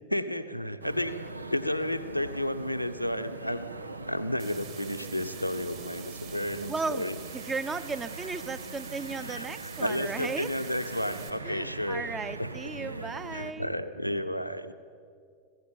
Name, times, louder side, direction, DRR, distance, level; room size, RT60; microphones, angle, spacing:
voice 1, 0.1-1.2 1.5-3.6 4.1-7.2 9.2-9.5 9.8-12.0 12.4-12.5 13.3-14.7, left 1 dB, 90° left, 8 dB, 1.0 m, -32 dB
sound 1, 0.8-13.5, right 3 dB, 80° right, 0.7 m, -41 dB
sound 2, 4.4-11.3, right 9 dB, 45° right, 3.7 m, -47 dB
voice 2, 6.7-10.5 11.4-13.7, right 4 dB, 15° right, 14 dB, 0.9 m, -36 dB
25.5 x 16.0 x 8.7 m, 2.3 s
figure-of-eight pair, 90°, 0 cm